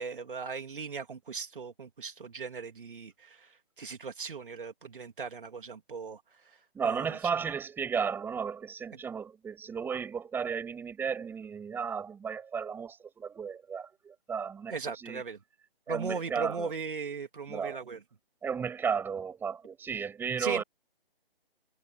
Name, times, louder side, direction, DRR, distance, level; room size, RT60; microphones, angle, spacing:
voice 1, 0.0-6.6 6.8-7.2 14.7-15.4 15.9-18.0 20.4-20.6, right 5 dB, 60° right, 3.1 m, -38 dB
voice 2, 6.7-15.2 15.9-16.7 17.5-17.8 18.4-20.6, right 6 dB, 5° right, 7.2 m, -34 dB
figure-of-eight pair, 145°, 30 cm